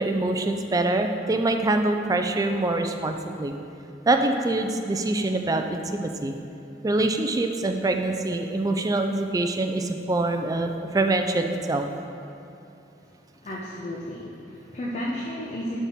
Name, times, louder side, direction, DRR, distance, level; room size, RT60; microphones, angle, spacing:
voice 1, 0.0-3.5 4.1-6.3 6.8-11.8, right 2 dB, 20° right, 5 dB, 0.4 m, -25 dB
voice 2, 13.4-15.8, left 1 dB, 40° left, -4 dB, 0.7 m, -33 dB
11.0 x 4.2 x 3.6 m, 2.8 s
head